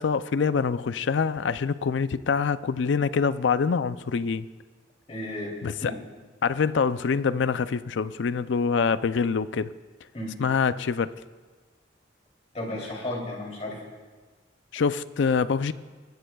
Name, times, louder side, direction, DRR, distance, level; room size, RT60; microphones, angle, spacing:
voice 1, 0.0-4.5 5.6-5.9 6.4-9.7 10.4-11.1 14.7-15.7, left 5 dB, 75° left, 15 dB, 0.4 m, -25 dB
voice 2, 5.1-5.5 5.8-5.9 10.1-10.3 12.5-13.8, left 1 dB, 35° left, -1 dB, 2.9 m, -33 dB
20.5 x 14.5 x 2.3 m, 1.4 s
head